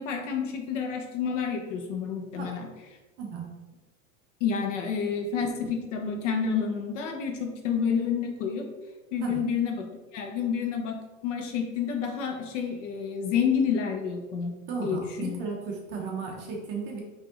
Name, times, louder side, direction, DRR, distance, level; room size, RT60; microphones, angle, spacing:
voice 1, 0.0-2.7 4.4-8.7 9.1-9.8 10.1-14.5 14.8-15.4, left 6 dB, 65° left, 3 dB, 1.0 m, -29 dB
voice 2, 14.7-17.0, right 5 dB, 25° right, 0 dB, 0.7 m, -34 dB
4.9 x 2.8 x 3.7 m, 1.2 s
supercardioid pair, 155°, 40 cm